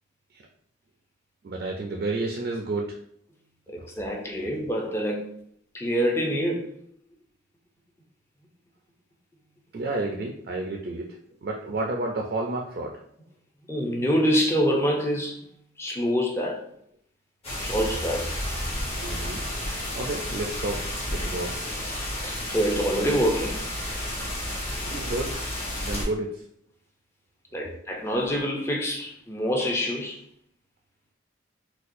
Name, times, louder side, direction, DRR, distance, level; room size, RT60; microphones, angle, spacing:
voice 1, 1.4-3.0 4.0-4.1 4.4-4.5 9.7-11.1 11.4-12.9 19.0-19.4 20.0-20.8 21.1-21.7 24.9-25.4 25.8-26.3 27.6-27.7, right 2 dB, 55° right, 1 dB, 0.4 m, -30 dB
voice 2, 3.7-5.3 5.7-6.7 13.7-15.5 15.8-16.7 17.6-18.3 22.2-23.6 27.5-30.2, equal, 15° left, 0 dB, 0.5 m, -26 dB
sound 1, 17.4-26.0, left 1 dB, 30° left, 0.9 m, -31 dB
4.1 x 2.2 x 2.6 m, 0.68 s
head